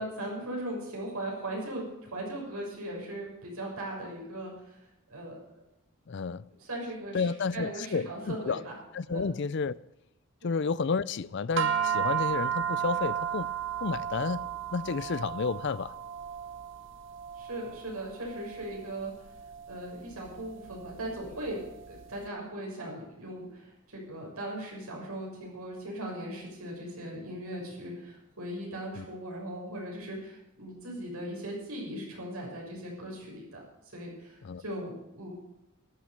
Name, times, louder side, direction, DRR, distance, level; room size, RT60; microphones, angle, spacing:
voice 1, 0.0-4.8 5.1-5.6 6.6-8.8 9.1-9.3 10.4-10.5 17.4-19.1 19.7-33.6 33.9-35.3, right 1 dB, 80° right, 6.5 m, -39 dB
voice 2, 6.1-6.4 7.1-8.6 8.9-9.7 10.4-13.5 13.8-14.4 14.7-16.0 29.0-29.1 34.4-34.6, left 5 dB, 50° left, 0.4 m, -31 dB
sound 1, 11.6-22.0, right 9 dB, 55° right, 1.0 m, -34 dB
13.0 x 10.5 x 6.7 m
head